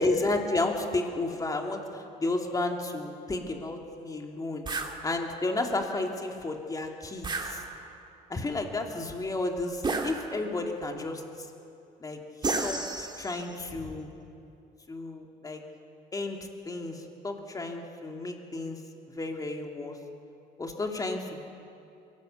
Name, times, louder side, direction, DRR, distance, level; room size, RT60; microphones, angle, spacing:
voice 1, 0.0-4.6 5.0-7.6 8.3-11.5 12.0-14.1 14.9-15.6 16.1-16.4 16.6-18.8 19.1-20.0 20.6-21.5, left 2 dB, 20° left, 2 dB, 2.9 m, -32 dB
sound 1, 4.7-5.0 7.2-8.1 9.8-10.6 12.4-13.5, right 3 dB, 25° right, 2.2 m, -32 dB
23.5 x 18.0 x 8.1 m, 2.6 s
cardioid pair, 110°, 17 cm